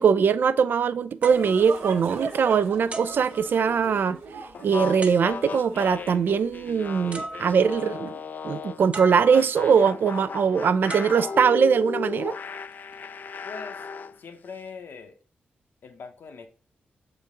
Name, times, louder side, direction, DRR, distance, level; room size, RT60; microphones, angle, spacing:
voice 1, 0.0-4.2 4.6-12.3, right 6 dB, 65° right, 0.4 m, -21 dB
sound 1, 1.2-2.4 2.9-4.1 5.0-5.7 6.8-6.9 7.1-7.9 8.9-9.7 10.9-12.0 12.7-13.0, right 2 dB, 40° right, 0.9 m, -39 dB
sound 2, 1.3-7.8, right 4 dB, 85° right, 0.9 m, -40 dB
sound 3, 4.5-8.9 9.3-14.2, left 5 dB, 55° left, 0.3 m, -36 dB
voice 2, 13.4-13.9 14.2-15.2 15.8-16.5, left 5 dB, 75° left, 1.1 m, -41 dB
7.2 x 3.9 x 3.8 m
cardioid pair, 70°, 4 cm